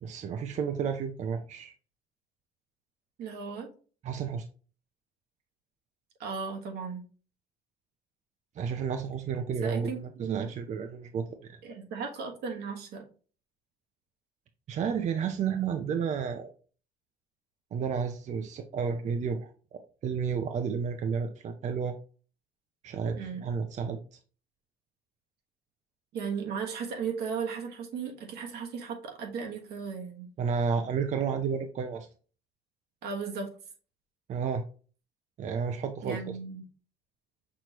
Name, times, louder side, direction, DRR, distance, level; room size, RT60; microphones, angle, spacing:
voice 1, 0.0-1.7 4.0-4.5 8.6-11.6 14.7-16.5 17.7-19.5 20.0-21.9 22.8-24.0 30.4-32.1 34.3-34.6 35.4-36.4, right 6 dB, 45° right, 6 dB, 0.5 m, -31 dB
voice 2, 3.2-3.7 6.2-7.0 9.6-10.5 11.6-13.0 23.2-23.5 26.1-30.3 33.0-33.5 36.0-36.6, right 6 dB, 75° right, 2 dB, 1.3 m, -36 dB
6.1 x 3.0 x 2.9 m, 0.39 s
cardioid pair, 110°, 17 cm